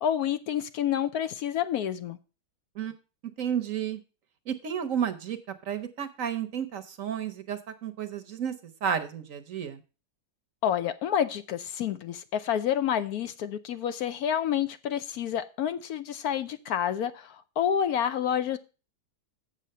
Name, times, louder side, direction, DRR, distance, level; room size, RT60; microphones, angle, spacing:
voice 1, 0.0-2.2 10.6-18.6, left 9 dB, 70° left, 1.1 m, -29 dB
voice 2, 3.4-4.0 4.5-5.4 5.7-8.5 8.8-9.8, right 8 dB, 60° right, 1.0 m, -31 dB
7.6 x 7.1 x 5.3 m
omnidirectional pair, 1.8 m